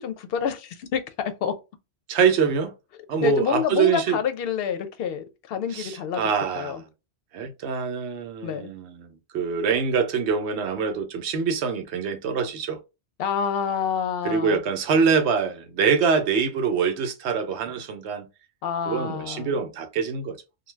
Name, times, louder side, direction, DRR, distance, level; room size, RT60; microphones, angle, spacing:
voice 1, 0.0-1.5 3.2-6.2 6.6-6.8 8.4-8.7 13.2-14.6 18.6-19.5, left 7 dB, 65° left, 0.7 m, -28 dB
voice 2, 2.1-2.7 3.1-4.2 5.7-6.9 7.3-12.8 14.2-18.3 18.9-20.4, right 6 dB, 85° right, 0.9 m, -24 dB
2.6 x 2.2 x 3.2 m
omnidirectional pair, 1.1 m